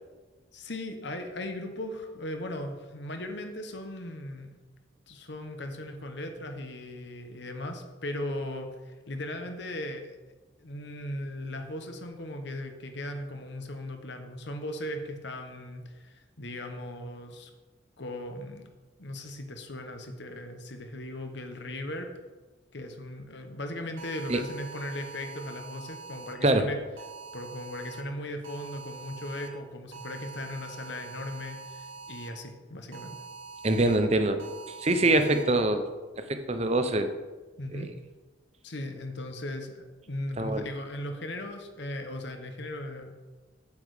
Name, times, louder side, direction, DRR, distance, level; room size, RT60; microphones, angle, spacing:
voice 1, 0.5-4.6 5.1-10.2 10.6-17.5 18.0-18.7 19.0-22.1 22.7-26.8 27.3-33.2 37.6-37.9 38.6-43.1, left 1 dB, 60° left, 5 dB, 1.2 m, -38 dB
sound 1, 24.0-26.3 27.0-28.0 28.4-29.5 29.9-32.3 32.9-34.0 34.4-35.4, right 5 dB, 80° right, 1.3 m, -44 dB
voice 2, 33.6-34.4 34.8-35.8 36.2-37.1 37.7-37.9 40.4-40.6, right 2 dB, 30° right, 8 dB, 0.7 m, -24 dB
8.5 x 8.5 x 5.0 m, 1.3 s
head